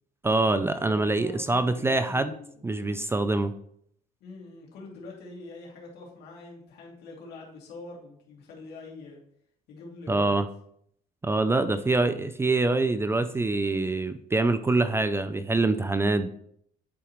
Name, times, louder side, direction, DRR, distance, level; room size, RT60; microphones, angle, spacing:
voice 1, 0.2-2.4 2.6-3.5 10.1-10.5 11.2-16.3, right 2 dB, 15° right, 11 dB, 0.4 m, -25 dB
voice 2, 0.9-2.9 4.2-9.2 9.7-10.4 11.5-11.9, left 3 dB, 75° left, -2 dB, 2.6 m, -44 dB
10.5 x 4.9 x 3.1 m, 0.68 s
cardioid pair, 110°, 17 cm